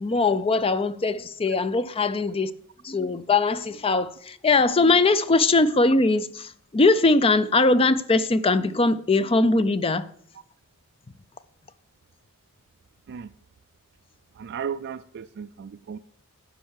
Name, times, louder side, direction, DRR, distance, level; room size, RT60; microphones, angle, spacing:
voice 1, 0.0-2.5 2.8-10.1, left 3 dB, 25° left, 0.4 m, -21 dB
voice 2, 14.3-16.0, right 7 dB, 50° right, 0.3 m, -35 dB
10.5 x 5.4 x 6.4 m
head